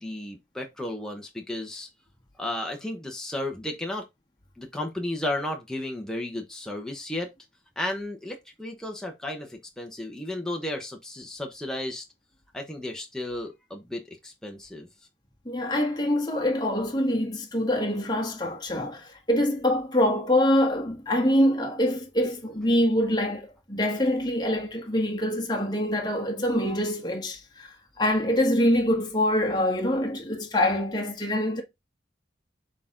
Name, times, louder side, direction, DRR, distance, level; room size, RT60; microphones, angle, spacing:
voice 1, 0.0-1.9 2.4-4.0 4.6-7.3 7.8-12.0 12.5-14.9, left 1 dB, 5° left, 1.0 m, -33 dB
voice 2, 15.4-31.6, left 1 dB, 20° left, 1.5 m, -25 dB
6.7 x 3.8 x 3.7 m
head